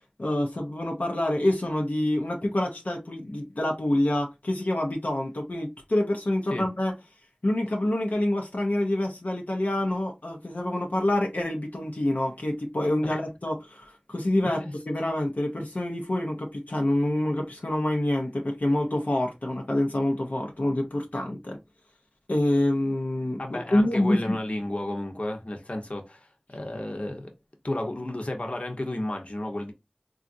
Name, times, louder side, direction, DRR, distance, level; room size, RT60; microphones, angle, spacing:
voice 1, 0.2-6.9 7.4-14.6 14.9-21.6 22.3-24.4, left 1 dB, 85° left, 0.6 m, -27 dB
voice 2, 14.4-14.7 23.4-27.3 27.6-29.7, left 1 dB, 55° left, 0.8 m, -32 dB
3.7 x 2.4 x 2.5 m
wide cardioid pair, 40°, 3 cm